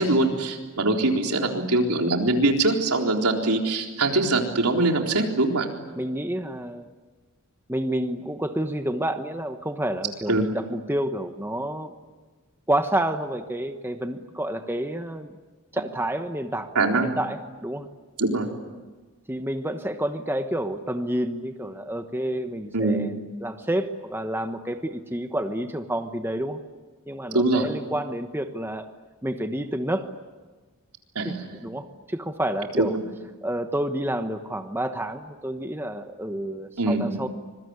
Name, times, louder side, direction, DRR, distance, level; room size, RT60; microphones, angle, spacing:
voice 1, 0.0-5.7 10.3-10.5 16.8-17.1 18.2-18.5 22.7-23.0 27.3-27.7 31.2-31.6 32.8-33.0 36.8-37.0, right 2 dB, 85° right, 2 dB, 3.9 m, -23 dB
voice 2, 6.0-6.9 7.7-11.9 12.7-15.3 15.7-17.9 19.3-23.1 23.4-26.6 27.1-28.9 29.2-30.1 31.2-32.9 33.4-37.3, right 1 dB, 10° right, 7 dB, 1.2 m, -29 dB
25.5 x 22.5 x 9.7 m, 1.3 s
head